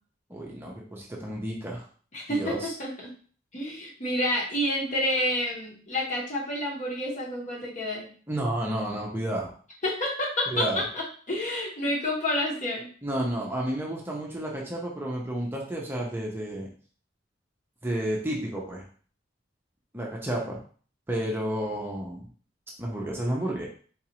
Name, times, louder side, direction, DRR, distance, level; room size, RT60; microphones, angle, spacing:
voice 1, 0.3-1.9 2.3-2.7 8.3-9.5 10.5-10.8 13.0-16.7 17.8-18.9 19.9-20.6 21.1-22.3 22.8-23.7, right 1 dB, 10° right, -2 dB, 0.6 m, -31 dB
voice 2, 2.1-3.1 3.5-8.1 9.8-12.9, left 1 dB, 40° left, -2 dB, 1.0 m, -29 dB
4.0 x 2.5 x 2.9 m, 0.43 s
head